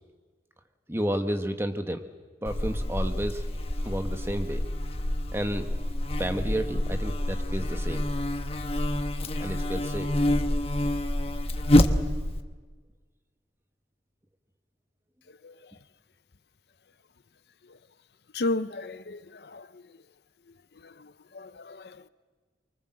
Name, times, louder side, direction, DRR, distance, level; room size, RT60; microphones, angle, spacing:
voice 1, 0.9-2.0 2.4-3.5 3.8-4.6 5.3-5.7 6.2-8.0 9.4-10.1, right 1 dB, 15° right, 1.3 m, -31 dB
Buzz, 2.5-12.4, left 1 dB, 35° left, 1.1 m, -27 dB
voice 2, 18.3-19.7 20.8-22.1, left 2 dB, 65° left, 0.7 m, -34 dB
24.5 x 24.0 x 7.7 m
head